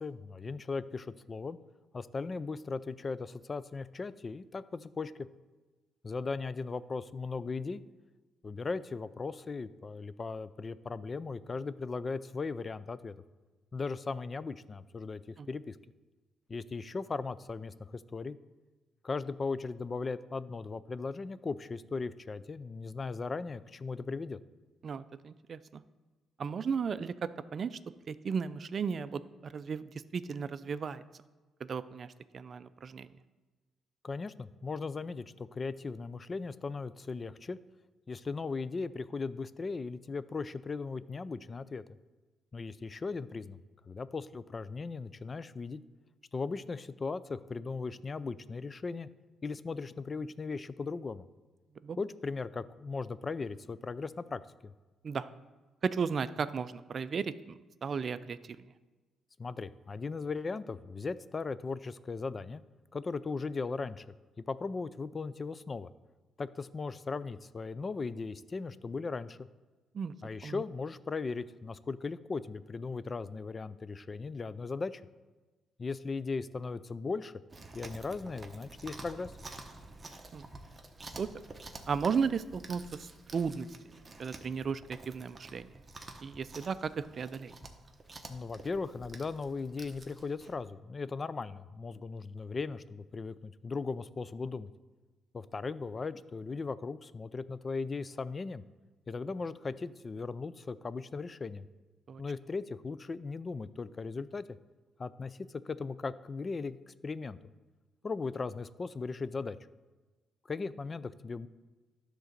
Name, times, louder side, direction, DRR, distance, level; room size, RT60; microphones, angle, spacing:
voice 1, 0.0-1.6 1.9-5.1 6.0-7.8 8.4-13.1 13.7-15.2 15.5-15.8 16.5-18.4 19.0-24.4 34.0-37.6 38.1-41.8 42.5-43.6 43.9-45.8 46.3-49.1 49.4-51.3 52.0-54.7 59.4-62.6 62.9-64.1 64.5-65.9 66.4-69.5 70.2-75.0 75.8-77.4 77.7-79.3 88.3-94.7 95.3-98.6 99.1-101.7 102.2-104.4 105.0-105.4 105.6-107.4 108.0-109.6 110.5-111.5, left 4 dB, 35° left, 16 dB, 0.3 m, -38 dB
voice 2, 24.8-25.8 26.4-27.8 28.1-29.8 30.1-31.0 31.6-33.1 51.8-52.0 55.0-55.3 55.8-58.6 69.9-70.1 70.4-70.6 80.3-80.4 81.2-81.3 81.9-83.9 84.2-85.7 86.2-87.5 102.1-102.2, right 6 dB, 45° right, 14 dB, 0.4 m, -35 dB
Chewing mastication, 77.5-90.5, right 2 dB, 25° right, 1.0 m, -50 dB
11.0 x 3.9 x 6.5 m, 1.3 s
cardioid pair, 90°, 0 cm